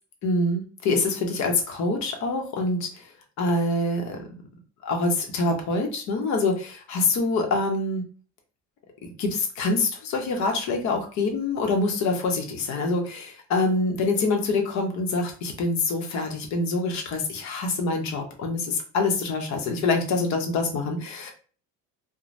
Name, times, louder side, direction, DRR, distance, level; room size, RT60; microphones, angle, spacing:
voice 1, 0.2-3.0 3.4-4.2 4.8-8.0 9.2-21.3, left 3 dB, 50° left, 3 dB, 0.8 m, -25 dB
3.2 x 2.1 x 2.6 m, 0.39 s
cardioid pair, 150°, 35 cm